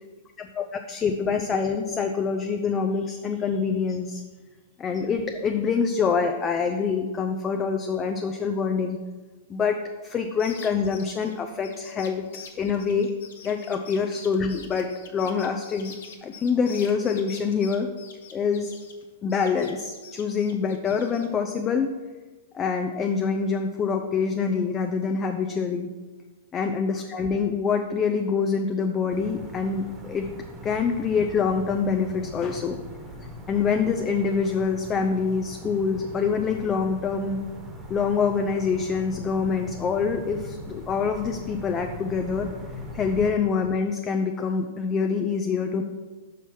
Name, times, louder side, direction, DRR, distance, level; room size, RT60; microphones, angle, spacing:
voice 1, 0.6-4.2 4.8-9.0 9.5-12.3 12.5-13.1 13.4-15.9 16.2-17.9 18.3-18.7 19.2-21.9 22.5-25.9 26.5-30.3 30.6-32.8 33.5-37.4 37.9-42.5 42.9-45.8, left 5 dB, 25° left, 5 dB, 0.5 m, -25 dB
sound 1, 10.3-19.0 19.3-21.3, left 6 dB, 65° left, 0.9 m, -45 dB
sound 2, 29.1-43.3, equal, 20° right, 1.4 m, -40 dB
5.8 x 5.5 x 4.6 m, 1.3 s
figure-of-eight pair, 105°, 0 cm